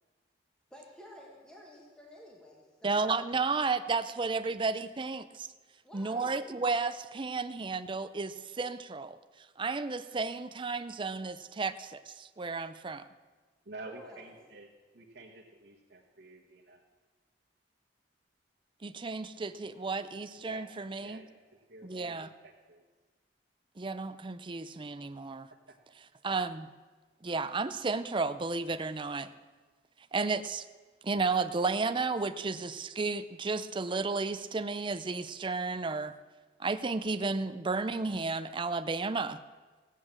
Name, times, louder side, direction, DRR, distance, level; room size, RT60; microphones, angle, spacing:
voice 1, 0.7-3.1 5.8-6.5 13.8-14.5, equal, 5° left, -2 dB, 1.7 m, -52 dB
voice 2, 2.8-5.5 5.9-13.1 18.8-21.2 21.8-22.3 23.8-25.5 26.2-26.7 27.2-29.3 30.1-30.7 31.0-36.2 36.6-39.4, right 4 dB, 30° right, 11 dB, 0.5 m, -33 dB
voice 3, 13.6-14.7 14.9-16.8 20.4-20.6 21.0-22.8 25.7-25.8, right 2 dB, 70° right, -2 dB, 1.4 m, -49 dB
16.5 x 8.3 x 7.4 m, 1.3 s
head